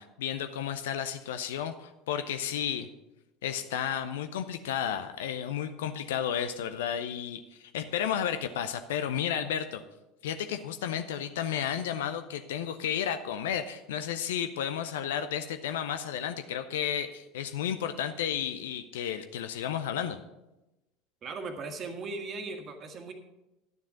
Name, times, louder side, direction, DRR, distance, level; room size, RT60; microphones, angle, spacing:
voice 1, 0.0-2.9 3.4-9.8 10.2-20.2, left 9 dB, 70° left, 10 dB, 0.5 m, -32 dB
voice 2, 21.2-23.1, right 3 dB, 40° right, 5 dB, 1.6 m, -38 dB
11.0 x 7.2 x 5.8 m, 0.98 s
figure-of-eight pair, 70°, 0 cm